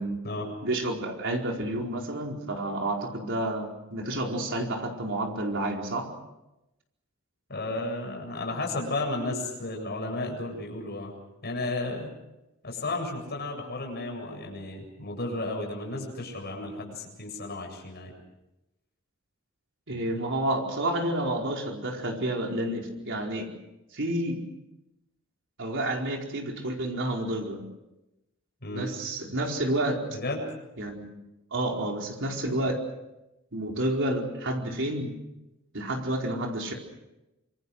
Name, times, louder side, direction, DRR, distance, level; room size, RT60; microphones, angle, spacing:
voice 1, 0.6-6.1 19.9-23.5 23.9-24.4 25.6-27.6 28.7-30.0 30.8-31.1 31.5-32.8 33.5-35.1 35.7-36.7, right 1 dB, 60° right, 1 dB, 4.6 m, -30 dB
voice 2, 7.5-11.1 11.4-12.1 12.6-18.1 28.6-28.9 30.1-30.5, left 2 dB, 50° left, 1 dB, 7.7 m, -33 dB
26.5 x 24.0 x 6.4 m, 0.95 s
head